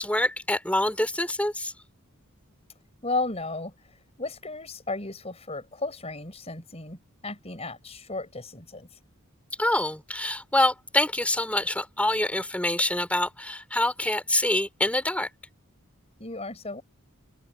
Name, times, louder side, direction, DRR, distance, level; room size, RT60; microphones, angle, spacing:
voice 1, 0.0-1.7 9.6-15.3, left 1 dB, 5° left, 4.3 m, -26 dB
voice 2, 3.0-3.7 4.2-8.9 16.2-16.8, left 3 dB, 30° left, 6.2 m, -34 dB
open air
head